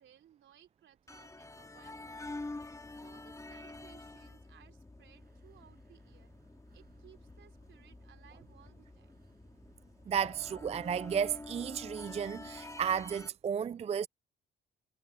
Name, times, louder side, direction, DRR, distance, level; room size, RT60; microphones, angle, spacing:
voice 1, 0.0-2.4 2.9-6.4 6.7-9.3 11.3-11.4, right 10 dB, 70° right, 4.2 m, -62 dB
sound 1, 1.1-13.3, left 2 dB, 15° left, 2.8 m, -48 dB
sound 2, 5.1-12.1, right 7 dB, 50° right, 7.1 m, -67 dB
voice 2, 10.1-14.1, right 7 dB, 30° right, 0.4 m, -33 dB
cardioid pair, 90°, 20 cm